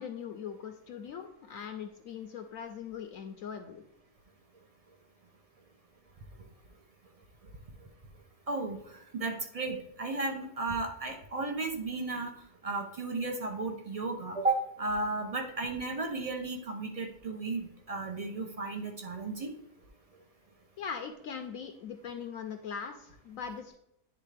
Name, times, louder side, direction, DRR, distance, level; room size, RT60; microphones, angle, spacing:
voice 1, 0.0-3.8 20.8-23.8, left 7 dB, 70° left, 6 dB, 0.9 m, -41 dB
voice 2, 8.5-12.3 12.6-19.5, right 3 dB, 55° right, 3 dB, 0.4 m, -34 dB
9.9 x 3.6 x 3.3 m, 0.81 s
omnidirectional pair, 1.6 m